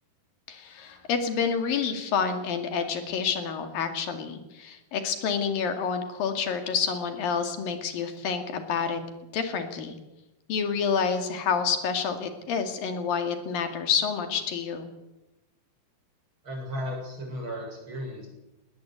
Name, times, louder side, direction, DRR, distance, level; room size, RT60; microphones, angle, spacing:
voice 1, 0.5-9.0 9.3-10.0 10.5-14.9, left 6 dB, 60° left, 6 dB, 3.9 m, -28 dB
voice 2, 16.4-18.3, equal, 30° right, 0 dB, 8.2 m, -35 dB
20.0 x 19.5 x 8.3 m, 0.98 s
omnidirectional pair, 4.8 m